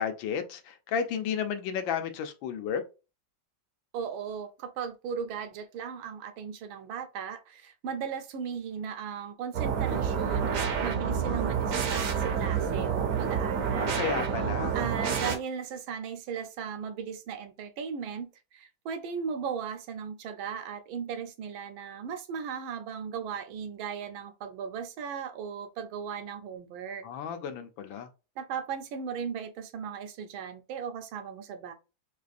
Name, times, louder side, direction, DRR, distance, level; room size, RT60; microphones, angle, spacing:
voice 1, 0.0-2.8 13.8-14.8 27.0-28.1, left 7 dB, 80° left, 1.3 m, -32 dB
voice 2, 3.9-14.1 14.7-27.1 28.4-31.7, right 7 dB, 85° right, 1.5 m, -37 dB
sound 1, 9.5-15.4, right 7 dB, 65° right, 0.8 m, -28 dB
4.7 x 2.5 x 2.4 m
omnidirectional pair, 2.2 m